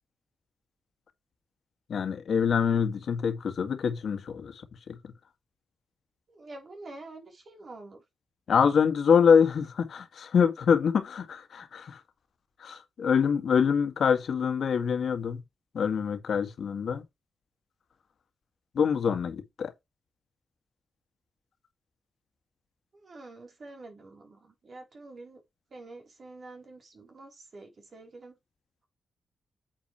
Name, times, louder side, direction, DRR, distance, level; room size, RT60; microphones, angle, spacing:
voice 1, 1.9-4.5 8.5-12.0 12.6-15.4 15.7-17.0 18.7-19.7, left 6 dB, 65° left, 2.0 m, -25 dB
voice 2, 6.3-8.0 22.9-25.4 25.7-28.3, right 2 dB, 45° right, 3.8 m, -47 dB
8.9 x 6.9 x 3.2 m
cardioid pair, 110°, 0 cm